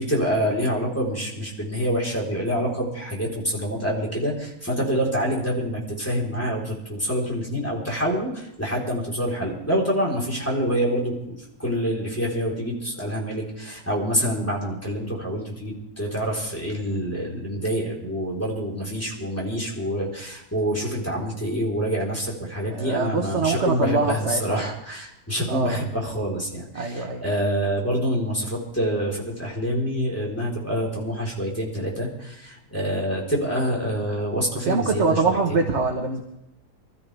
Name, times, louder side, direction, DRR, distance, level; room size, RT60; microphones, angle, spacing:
voice 1, 0.0-35.4, equal, 10° left, -3 dB, 4.0 m, -26 dB
voice 2, 22.7-24.6 25.5-25.8 26.7-27.2 34.7-36.2, right 4 dB, 45° right, 2 dB, 1.6 m, -24 dB
25.5 x 13.5 x 3.5 m, 0.82 s
omnidirectional pair, 1.7 m